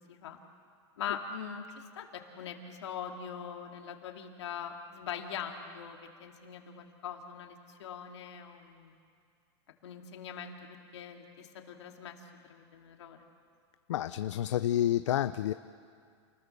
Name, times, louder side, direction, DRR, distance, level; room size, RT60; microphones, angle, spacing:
voice 1, 1.0-9.0 9.8-12.2 12.4-13.3, left 7 dB, 70° left, 3 dB, 2.8 m, -42 dB
voice 2, 13.9-15.5, left 12 dB, 85° left, 12 dB, 0.6 m, -29 dB
28.5 x 20.5 x 6.8 m, 2.2 s
supercardioid pair, 180°, 15 cm